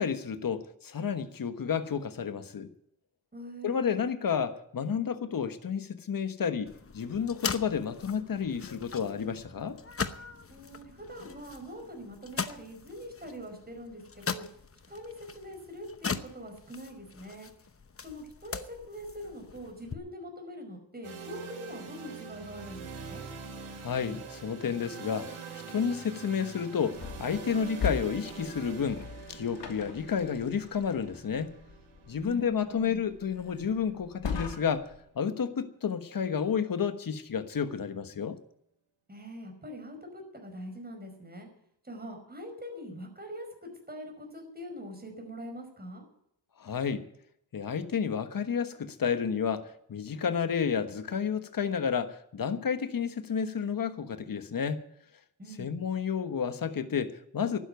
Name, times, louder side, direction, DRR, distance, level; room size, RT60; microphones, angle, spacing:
voice 1, 0.0-2.7 3.6-9.8 23.8-25.4 25.7-31.5 32.1-34.9 35.1-38.4 46.6-47.0 47.5-54.8 55.6-57.6, left 7 dB, 45° left, 1.3 m, -31 dB
voice 2, 3.3-4.0 10.5-14.5 14.9-17.5 18.0-23.2 32.1-33.0 39.1-41.5 41.8-46.0 55.4-55.7, equal, 20° right, 5.3 m, -43 dB
sound 1, 6.7-19.9, left 5 dB, 30° left, 0.9 m, -40 dB
sound 2, 21.0-34.9, right 5 dB, 90° right, 3.9 m, -45 dB
sound 3, 26.9-35.0, left 5 dB, 65° left, 2.7 m, -40 dB
12.0 x 10.0 x 9.4 m
cardioid pair, 100°, 47 cm